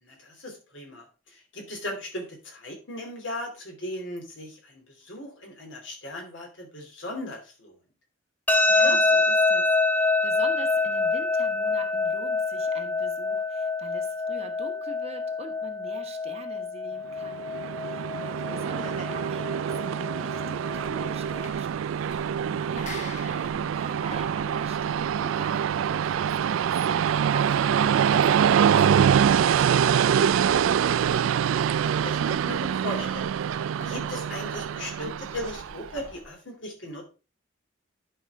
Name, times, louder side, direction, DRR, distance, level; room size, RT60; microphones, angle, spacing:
voice 1, 0.0-7.8 8.6-9.0 19.0-19.1 31.7-37.1, left 1 dB, 65° left, 2 dB, 2.9 m, -38 dB
sound 1, 8.5-21.5, left 3 dB, 10° left, 0.6 m, -26 dB
voice 2, 8.7-17.5 17.8-30.6, right 3 dB, 30° right, 5 dB, 1.1 m, -43 dB
Train, 17.2-35.9, right 8 dB, 85° right, 0.3 m, -25 dB
sound 2, 20.5-36.3, left 2 dB, 35° left, 1.4 m, -47 dB
11.0 x 5.3 x 3.5 m, 0.32 s
head